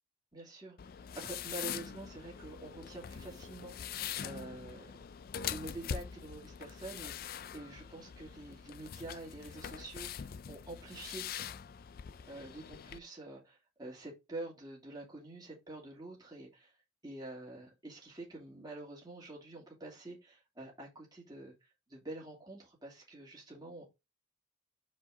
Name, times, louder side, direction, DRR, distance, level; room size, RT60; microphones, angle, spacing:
voice 1, 0.3-0.8 1.1-4.9 5.5-11.3 12.3-16.7 17.0-23.9, right 2 dB, 20° right, 2.8 m, -47 dB
sound 1, 0.8-13.0, left 8 dB, 45° left, 0.3 m, -43 dB
5.4 x 4.8 x 3.8 m
head